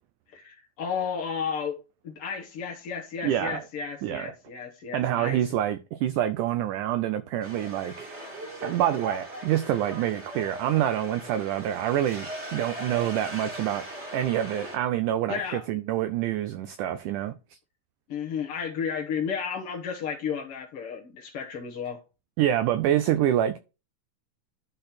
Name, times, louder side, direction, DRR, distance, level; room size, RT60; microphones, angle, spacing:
voice 1, 0.3-1.8 2.0-5.4 15.3-15.6 18.1-22.0, left 6 dB, 60° left, 1.6 m, -33 dB
voice 2, 3.2-3.6 4.0-4.3 4.9-8.2 8.6-13.9 14.1-17.4 22.4-23.6, right 11 dB, 85° right, 1.8 m, -26 dB
sound 1, 7.4-14.8, right 1 dB, 25° right, 1.8 m, -39 dB
12.0 x 4.1 x 4.2 m
omnidirectional pair, 4.2 m